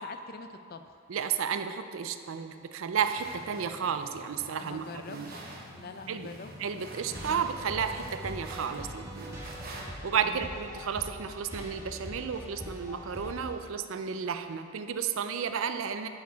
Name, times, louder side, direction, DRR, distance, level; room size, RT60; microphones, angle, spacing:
voice 1, 0.0-1.0 4.4-6.5 7.1-7.5 10.2-10.5, left 4 dB, 45° left, 8 dB, 0.4 m, -45 dB
voice 2, 1.1-5.3 6.1-6.3 6.6-9.4 10.0-16.1, right 7 dB, 65° right, 9 dB, 0.4 m, -32 dB
sound 1, 3.0-9.9, right 1 dB, 45° right, 1.0 m, -46 dB
sound 2, 7.1-13.6, equal, 15° right, 1.2 m, -43 dB
11.5 x 4.8 x 4.6 m, 2.5 s
head